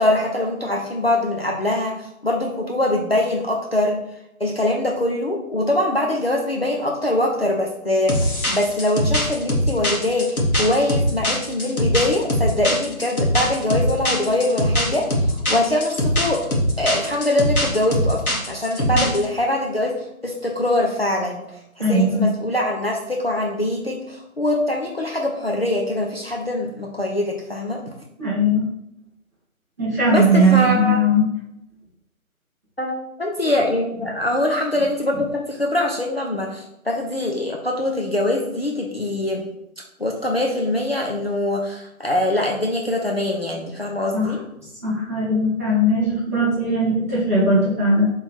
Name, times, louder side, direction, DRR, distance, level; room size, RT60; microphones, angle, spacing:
voice 1, 0.0-4.0 4.4-16.5 16.8-21.4 21.8-27.8 30.1-31.0 32.8-39.4 40.0-44.4, left 1 dB, 45° left, 0 dB, 0.6 m, -23 dB
sound 1, 8.1-19.2, equal, 75° left, 1.5 m, -21 dB
voice 2, 21.8-22.2 28.2-28.6 29.8-31.3 44.1-44.3 44.8-48.1, equal, 10° right, -13 dB, 1.1 m, -19 dB
4.1 x 3.4 x 3.5 m, 0.81 s
figure-of-eight pair, 160°, 43 cm